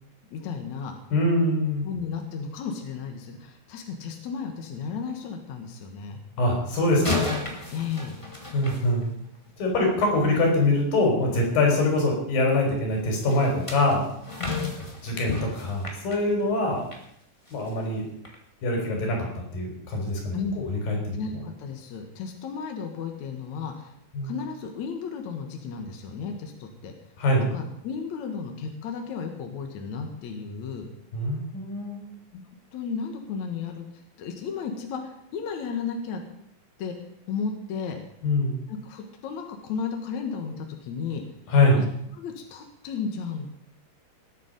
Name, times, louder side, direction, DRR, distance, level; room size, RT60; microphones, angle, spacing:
voice 1, 0.3-0.9 1.8-6.2 7.7-8.2 14.4-14.8 20.3-20.7 21.1-23.9 24.2-26.9 27.5-30.9 32.3-32.4 32.7-33.8 34.2-36.2 36.8-36.9 37.3-38.0 38.7-41.2 42.2-43.6, left 6 dB, 60° left, 4 dB, 2.5 m, -34 dB
voice 2, 1.1-1.8 6.4-7.3 8.5-9.1 9.6-14.0 15.0-16.8 17.5-18.1 18.6-21.2 24.1-24.3 27.2-27.5 31.1-32.1 38.2-38.5 41.5-41.8, left 2 dB, 85° left, 1 dB, 5.5 m, -24 dB
sound 1, 6.9-9.5 13.3-17.1 17.5-17.7 18.2-18.4, left 3 dB, 15° left, 1.3 m, -33 dB
19.0 x 8.4 x 5.2 m, 0.73 s
omnidirectional pair, 3.9 m